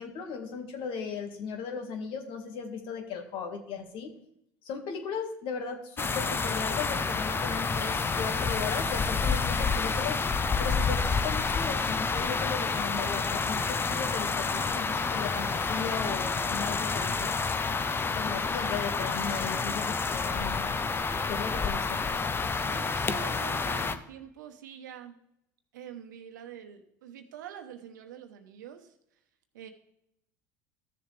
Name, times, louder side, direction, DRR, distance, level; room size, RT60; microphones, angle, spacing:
voice 1, 0.0-4.1 4.7-10.2 10.6-17.3 18.1-20.6 21.3-22.0, left 6 dB, 60° left, 5 dB, 2.0 m, -37 dB
sound 1, 6.0-24.0, left 4 dB, 25° left, 0.8 m, -29 dB
voice 2, 22.7-25.1 25.7-29.0 29.5-29.7, right 9 dB, 85° right, 7 dB, 1.1 m, -45 dB
14.0 x 6.9 x 3.4 m, 0.79 s
hypercardioid pair, 80°, 10 cm